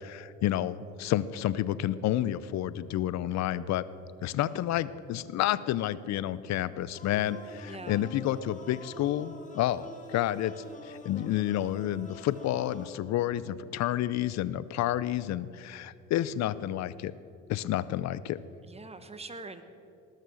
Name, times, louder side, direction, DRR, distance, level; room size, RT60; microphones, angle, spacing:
voice 1, 0.0-3.8 4.2-17.1 17.5-18.4, left 12 dB, 55° left, 17 dB, 0.6 m, -30 dB
sound 1, 7.0-13.0, left 2 dB, 25° left, 2.0 m, -47 dB
voice 2, 7.7-8.1 18.7-19.6, right 3 dB, 20° right, 9 dB, 1.2 m, -43 dB
18.5 x 6.6 x 6.4 m, 2.6 s
supercardioid pair, 75°, 32 cm